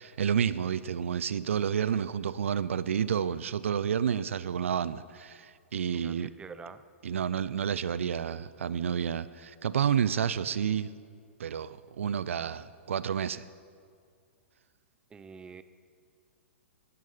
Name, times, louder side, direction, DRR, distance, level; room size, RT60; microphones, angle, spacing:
voice 1, 0.0-6.3 7.0-10.9 11.4-13.4, right 8 dB, 70° right, 17 dB, 0.5 m, -30 dB
voice 2, 5.9-6.8 15.1-15.6, right 5 dB, 10° right, 13 dB, 0.5 m, -46 dB
15.5 x 11.0 x 5.6 m, 2.2 s
hypercardioid pair, 115°, 7 cm